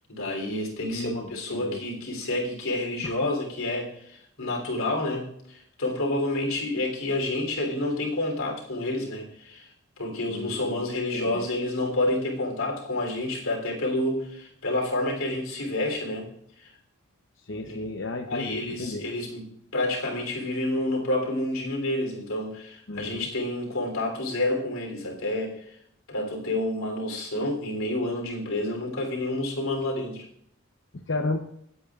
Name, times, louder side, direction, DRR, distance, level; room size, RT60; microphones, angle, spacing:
voice 1, 0.1-9.7 10.0-16.3 16.6-16.7 17.6-17.8 18.3-19.4 19.7-25.7 26.1-30.2, left 1 dB, 80° left, 1 dB, 3.4 m, -29 dB
voice 2, 0.8-1.8 3.0-3.1 10.3-10.9 11.1-11.5 17.4-19.0 22.9-23.3 30.9-31.4, left 2 dB, 60° left, 3 dB, 0.8 m, -33 dB
25.5 x 8.6 x 2.5 m, 0.71 s
head